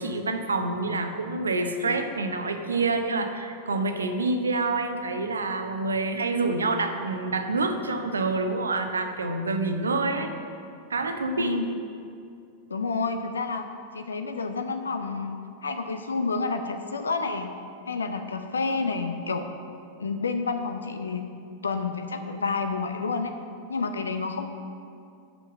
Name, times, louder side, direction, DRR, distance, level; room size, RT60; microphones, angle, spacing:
voice 1, 0.0-10.3 10.9-11.5, right 3 dB, 75° right, 6 dB, 0.7 m, -27 dB
voice 2, 12.7-13.7 13.9-17.5 17.9-19.5 20.0-21.2 21.6-23.3 23.7-24.5, left 4 dB, 70° left, 7 dB, 0.5 m, -29 dB
6.8 x 6.1 x 7.3 m, 2.4 s
figure-of-eight pair, 90°, 0 cm